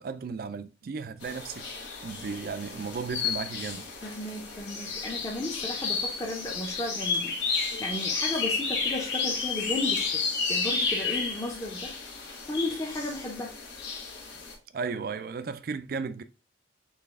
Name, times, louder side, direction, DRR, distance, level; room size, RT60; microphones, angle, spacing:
voice 1, 0.0-1.7 2.0-3.9 14.7-16.2, right 5 dB, 50° right, 0.3 m, -35 dB
sound 1, 1.2-14.5, left 5 dB, 75° left, 1.2 m, -32 dB
voice 2, 4.0-13.6, left 1 dB, 15° left, 0.7 m, -35 dB
4.0 x 3.3 x 3.5 m
head